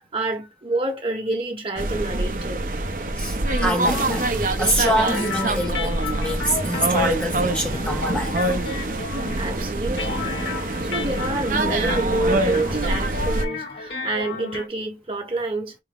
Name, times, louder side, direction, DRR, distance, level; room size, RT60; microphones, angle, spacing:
voice 1, 0.0-2.7 8.8-9.0 9.3-10.3 10.8-15.8, right 2 dB, 30° right, 1.1 m, -28 dB
sound 1, 1.8-13.5, right 2 dB, 50° right, 0.6 m, -25 dB
voice 2, 3.2-8.4, equal, 5° left, 0.6 m, -25 dB
sound 2, 3.4-14.7, left 4 dB, 85° left, 1.3 m, -33 dB
4.6 x 2.1 x 3.5 m
head